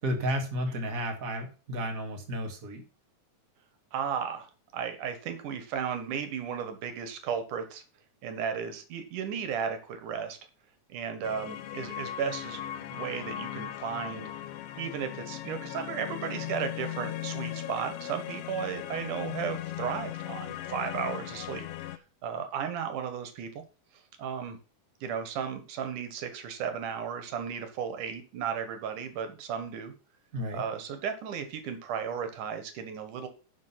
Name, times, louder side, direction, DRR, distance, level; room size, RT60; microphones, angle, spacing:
voice 1, 0.0-2.8 30.3-30.6, equal, 30° right, 3 dB, 2.2 m, -32 dB
voice 2, 3.9-4.5 4.7-7.8 8.2-10.4 10.9-14.3 14.7-23.6 24.2-24.6 25.0-29.9 30.5-33.3, right 7 dB, 85° right, 8 dB, 3.0 m, -35 dB
sound 1, 11.2-22.0, left 12 dB, 80° left, 1.4 m, -38 dB
10.5 x 5.3 x 5.8 m, 0.34 s
omnidirectional pair, 3.5 m